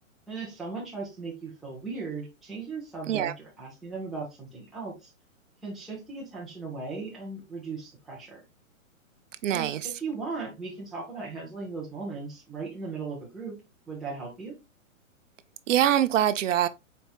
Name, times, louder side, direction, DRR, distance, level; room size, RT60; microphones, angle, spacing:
voice 1, 0.3-5.1 5.6-8.4 9.5-13.6 13.9-14.5, right 4 dB, ahead, 0.5 m, -37 dB
voice 2, 9.4-9.9 15.7-16.7, right 11 dB, 65° right, 0.5 m, -24 dB
4.3 x 3.4 x 2.3 m
hypercardioid pair, 145°, 40 cm